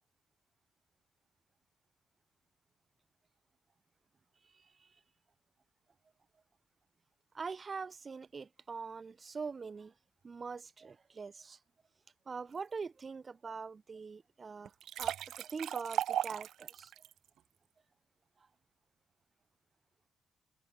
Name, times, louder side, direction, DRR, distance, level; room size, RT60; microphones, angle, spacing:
voice 1, 4.5-4.9 7.3-9.9 10.2-11.6 12.3-14.7 15.0-16.9, right 5 dB, 35° right, 2.4 m, -43 dB
sound 1, 14.7-17.1, right 11 dB, 75° right, 1.7 m, -36 dB
cardioid pair, 90°, 0 cm